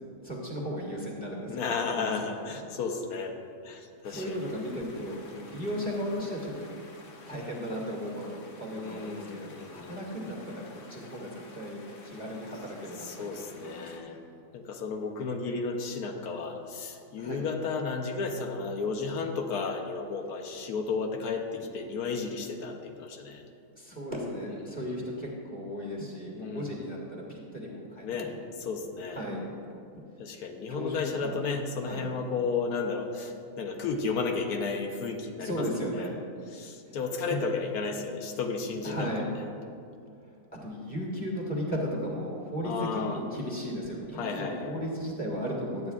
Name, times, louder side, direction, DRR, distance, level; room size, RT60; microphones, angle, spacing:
voice 1, 0.2-1.6 1.9-2.1 4.1-5.2 5.5-6.7 7.3-14.2 17.2-17.4 23.8-28.1 29.1-29.4 30.7-31.4 31.8-32.1 35.4-36.2 36.9-37.0 37.3-37.4 38.8-39.2 40.6-45.9, equal, 5° left, -3 dB, 1.7 m, -35 dB
voice 2, 1.5-3.4 3.6-4.4 5.3-5.6 8.7-10.0 13.0-14.2 14.5-23.4 24.4-24.9 26.4-26.7 28.0-28.3 28.6-29.2 30.2-35.7 35.9-36.1 36.5-39.1 39.4-39.5 42.6-43.2 44.1-44.8, left 4 dB, 90° left, 3 dB, 1.2 m, -33 dB
sound 1, 4.0-14.0, left 3 dB, 45° left, 0.9 m, -52 dB
12.0 x 8.9 x 2.4 m, 2.5 s
omnidirectional pair, 1.6 m